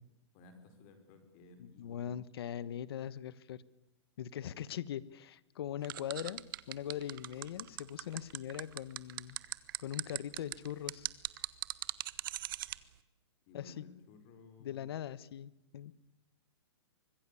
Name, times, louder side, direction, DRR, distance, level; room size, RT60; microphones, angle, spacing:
voice 1, 0.3-2.1 13.5-14.9, left 3 dB, 30° left, 8 dB, 5.0 m, -57 dB
voice 2, 1.6-3.6 4.2-6.4 6.7-9.4 9.8-11.1 13.5-13.8 14.6-15.9, left 10 dB, 55° left, 18 dB, 1.2 m, -41 dB
sound 1, 5.8-12.8, right 14 dB, 45° right, 1.1 m, -39 dB
25.0 x 20.5 x 8.5 m, 0.92 s
hypercardioid pair, 160°, 15 cm